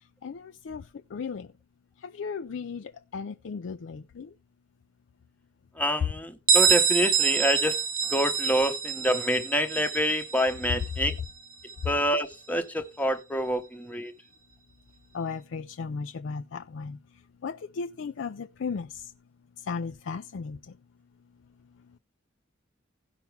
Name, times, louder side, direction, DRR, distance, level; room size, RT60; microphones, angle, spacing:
voice 1, 1.1-1.4 2.2-2.8 3.1-4.3 15.1-16.4 16.8-16.9 17.4-18.3 18.6-18.9 19.7-20.6, left 5 dB, 75° left, 0.4 m, -34 dB
voice 2, 5.8-7.8 8.1-11.2 11.8-14.1, equal, 10° left, 0.9 m, -27 dB
Bell, 6.5-12.0, right 6 dB, 45° right, 0.8 m, -26 dB
16.5 x 5.9 x 3.3 m
head